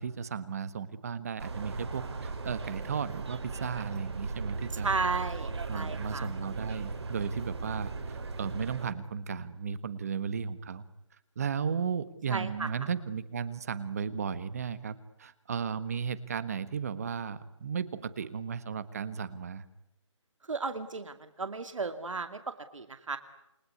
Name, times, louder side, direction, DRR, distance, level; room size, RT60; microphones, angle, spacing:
voice 1, 0.0-4.9 5.7-10.8 11.3-19.6, right 6 dB, 30° right, 15 dB, 1.4 m, -35 dB
sound 1, 1.4-8.9, right 4 dB, 55° right, 4.6 m, -37 dB
voice 2, 4.8-6.3 12.3-12.7 20.5-23.2, right 4 dB, 80° right, 9 dB, 2.6 m, -34 dB
29.0 x 20.5 x 9.7 m, 0.85 s
hypercardioid pair, 170°, 16 cm